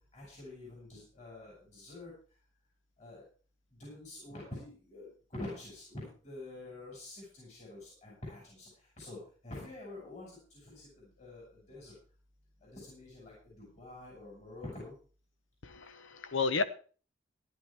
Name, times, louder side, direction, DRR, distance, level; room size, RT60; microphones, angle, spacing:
voice 1, 0.1-2.1 3.0-3.2 3.8-8.7 9.0-9.2 9.4-11.9 12.6-14.9, left 2 dB, 35° left, -4 dB, 6.2 m, -47 dB
voice 2, 15.6-16.6, left 4 dB, 80° left, 12 dB, 1.0 m, -32 dB
15.0 x 11.5 x 3.5 m, 0.39 s
head